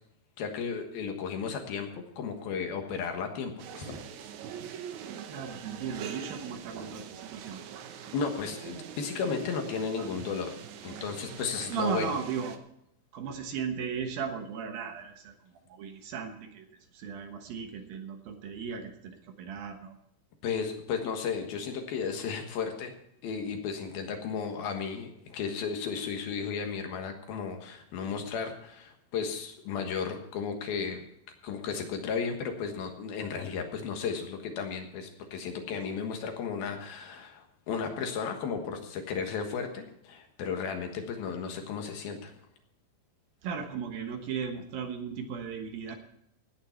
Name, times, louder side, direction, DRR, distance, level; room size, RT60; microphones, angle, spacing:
voice 1, 0.4-4.0 8.1-10.6 10.8-12.1 20.4-22.9 23.2-31.0 31.4-42.3, left 6 dB, 65° left, 4 dB, 3.1 m, -34 dB
sound 1, 3.6-12.6, right 8 dB, 90° right, 1.6 m, -43 dB
voice 2, 5.3-7.6 10.0-10.1 11.7-12.6 13.1-15.4 15.7-16.7 16.9-20.0 43.4-46.0, right 6 dB, 65° right, 5 dB, 2.7 m, -36 dB
17.5 x 9.9 x 4.4 m, 0.76 s
omnidirectional pair, 4.9 m